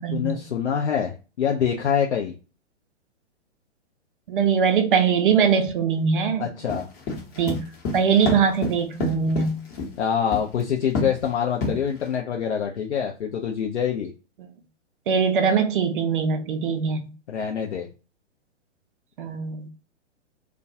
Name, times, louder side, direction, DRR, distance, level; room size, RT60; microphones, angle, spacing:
voice 1, 0.1-2.3 6.4-6.9 10.0-14.1 17.3-17.9, left 8 dB, 70° left, 0.5 m, -25 dB
voice 2, 4.3-6.5 7.3-7.6 7.9-9.6 14.4-14.5 15.1-17.1 19.2-19.7, right 6 dB, 45° right, 0.5 m, -22 dB
sound 1, 6.7-9.9 10.3-10.6 10.9-11.2 11.6-12.1, left 3 dB, 30° left, 0.9 m, -28 dB
2.2 x 2.2 x 2.7 m
figure-of-eight pair, 115°, 35 cm